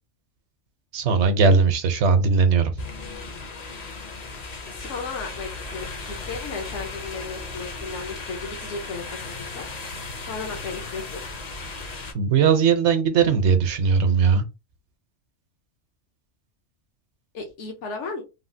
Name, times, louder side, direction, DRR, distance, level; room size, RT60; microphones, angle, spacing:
voice 1, 0.9-2.7 12.1-14.4, right 5 dB, 70° right, 0.9 m, -19 dB
sound 1, 2.8-12.1, left 3 dB, 45° left, 0.6 m, -36 dB
voice 2, 4.7-5.9 6.3-9.6 10.3-11.2 17.3-18.2, left 4 dB, 75° left, 1.1 m, -34 dB
3.2 x 2.4 x 2.6 m
omnidirectional pair, 1.2 m